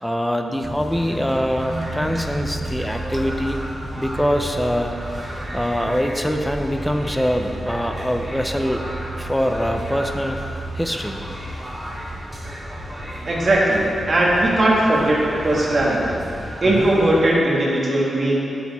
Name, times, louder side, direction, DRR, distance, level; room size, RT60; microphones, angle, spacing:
voice 1, 0.0-3.6 4.0-4.9 5.5-8.8 9.2-10.4 10.7-11.2 16.8-16.9, equal, 5° left, 4 dB, 0.5 m, -23 dB
sound 1, 0.6-17.2, right 1 dB, 15° right, 1.3 m, -32 dB
voice 2, 13.2-16.2 16.6-18.5, right 1 dB, 35° right, -5 dB, 1.5 m, -19 dB
8.4 x 8.0 x 4.1 m, 2.8 s
wide cardioid pair, 175°, 0 cm